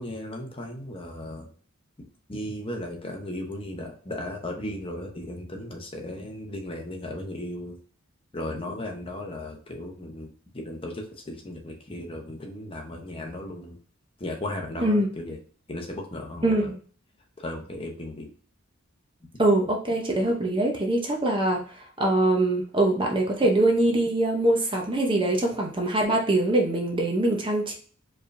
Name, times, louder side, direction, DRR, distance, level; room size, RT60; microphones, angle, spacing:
voice 1, 0.0-1.5 2.3-7.8 8.3-10.3 10.5-13.8 14.2-15.4 15.7-16.7 17.4-18.3, left 1 dB, 25° left, 2 dB, 0.8 m, -36 dB
voice 2, 16.4-16.8 19.4-21.6 22.0-27.7, right 1 dB, 25° right, 1 dB, 0.7 m, -23 dB
4.6 x 3.3 x 2.6 m, 0.43 s
head